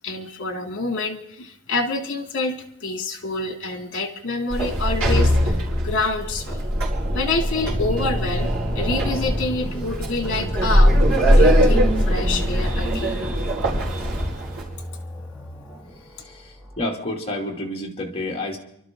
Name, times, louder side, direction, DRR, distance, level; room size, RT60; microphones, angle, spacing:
voice 1, 0.0-6.6 7.1-13.2, left 3 dB, 60° left, 5 dB, 2.4 m, -27 dB
Sliding door, 4.5-14.6, equal, 70° right, 4.6 m, -21 dB
sound 1, 6.9-16.8, equal, 5° right, 2.2 m, -36 dB
voice 2, 16.2-18.6, left 1 dB, 25° left, 0 dB, 2.5 m, -30 dB
29.5 x 12.5 x 3.8 m, 0.72 s
head